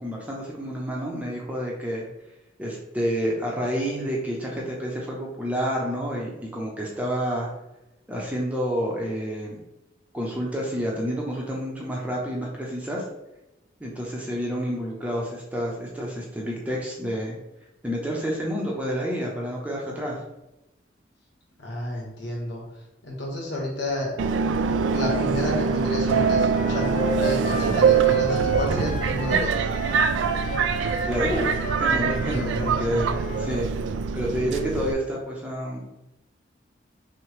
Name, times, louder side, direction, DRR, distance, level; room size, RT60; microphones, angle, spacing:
voice 1, 0.0-2.1 2.6-7.5 8.1-9.6 10.1-13.0 13.8-17.4 17.8-20.2 31.0-33.7 34.1-35.8, equal, 10° right, -3 dB, 0.7 m, -29 dB
voice 2, 21.6-22.6 23.0-24.2 24.6-29.7 32.3-33.1, left 1 dB, 70° left, -2 dB, 1.4 m, -31 dB
Subway metro underground, 24.2-34.9, right 6 dB, 85° right, 0.3 m, -24 dB
Wind instrument woodwind instrument, 26.1-33.6, left 1 dB, 45° left, 0.3 m, -34 dB
5.9 x 2.2 x 3.3 m, 0.94 s
head